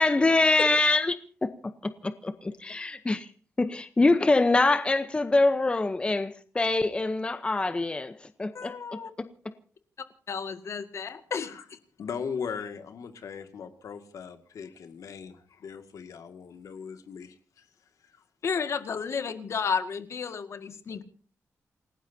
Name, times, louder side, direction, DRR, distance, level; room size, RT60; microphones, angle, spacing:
voice 1, 0.0-3.3 3.6-8.8, left 2 dB, 20° left, 0.8 m, -25 dB
voice 2, 8.5-9.1 10.3-11.8 18.4-21.0, left 6 dB, 55° left, 1.9 m, -32 dB
voice 3, 12.0-17.7 18.1-18.2, left 6 dB, 75° left, 2.1 m, -39 dB
28.5 x 18.0 x 2.8 m
wide cardioid pair, 145°, 6 cm